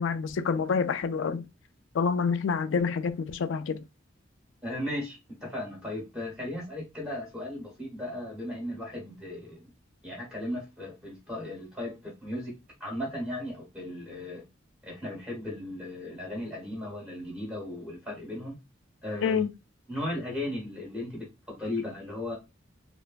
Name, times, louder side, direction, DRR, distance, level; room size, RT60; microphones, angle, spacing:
voice 1, 0.0-1.4 1.9-3.8 19.2-19.5, left 5 dB, 75° left, 0.4 m, -27 dB
voice 2, 4.6-9.6 10.0-14.4 14.8-18.6 19.0-19.4 19.9-22.4, left 1 dB, 5° right, 1.1 m, -36 dB
3.3 x 2.0 x 2.4 m
head